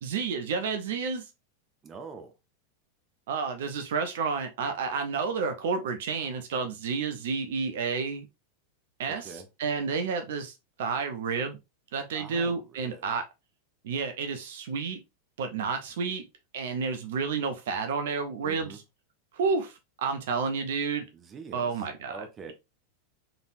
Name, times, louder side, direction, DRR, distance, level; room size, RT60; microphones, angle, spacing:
voice 1, 0.0-1.2 3.3-8.3 9.0-10.5 10.8-11.6 11.9-13.3 13.8-15.0 15.4-16.3 16.5-18.8 19.3-21.1 21.5-22.5, right 5 dB, 55° right, 0.7 m, -30 dB
voice 2, 1.8-2.3 9.0-9.5 12.1-13.1 18.4-18.8 21.1-21.7 22.1-22.5, right 4 dB, 25° right, 0.7 m, -44 dB
4.0 x 3.5 x 2.6 m
figure-of-eight pair, 90°, 0 cm